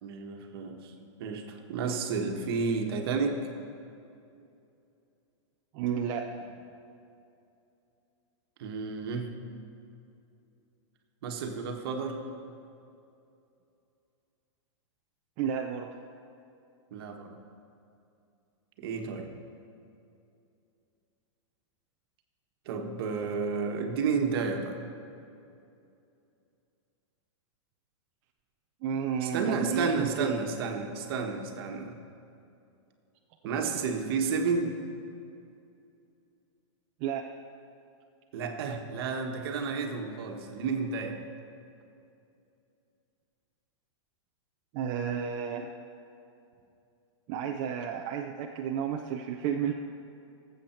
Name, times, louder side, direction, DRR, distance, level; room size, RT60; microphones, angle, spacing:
voice 1, 0.0-3.4 8.6-9.3 11.2-12.2 16.9-17.4 18.8-19.3 22.6-24.8 29.2-32.0 33.4-34.8 38.3-41.2, right 5 dB, 50° right, 3 dB, 1.4 m, -31 dB
voice 2, 5.7-6.3 15.4-15.9 28.8-30.4 37.0-37.3 44.7-45.7 47.3-49.7, right 8 dB, 25° right, 2 dB, 0.5 m, -32 dB
18.5 x 7.9 x 4.5 m, 2.7 s
supercardioid pair, 170°, 16 cm